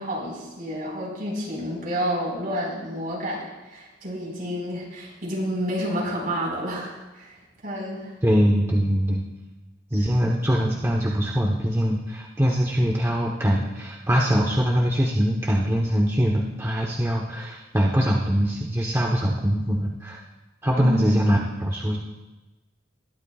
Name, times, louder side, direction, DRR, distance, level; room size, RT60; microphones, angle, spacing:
voice 1, 0.0-8.1 20.7-21.2, equal, 45° right, -3 dB, 4.7 m, -29 dB
voice 2, 8.2-9.2 9.9-20.2 20.6-22.0, equal, 15° right, -2 dB, 0.9 m, -22 dB
21.0 x 11.5 x 2.4 m, 1.1 s
head